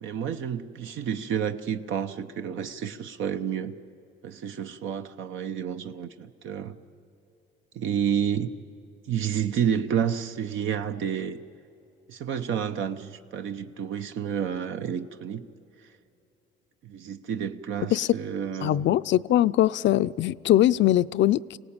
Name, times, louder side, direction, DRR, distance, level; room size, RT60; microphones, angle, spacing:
voice 1, 0.0-3.8 4.2-6.8 7.7-8.5 9.1-11.4 12.1-15.5 16.8-18.9, right 8 dB, 80° right, 8 dB, 0.9 m, -30 dB
voice 2, 18.6-21.6, left 13 dB, 65° left, 16 dB, 0.5 m, -22 dB
25.5 x 18.0 x 8.8 m, 2.7 s
cardioid pair, 90°, 20 cm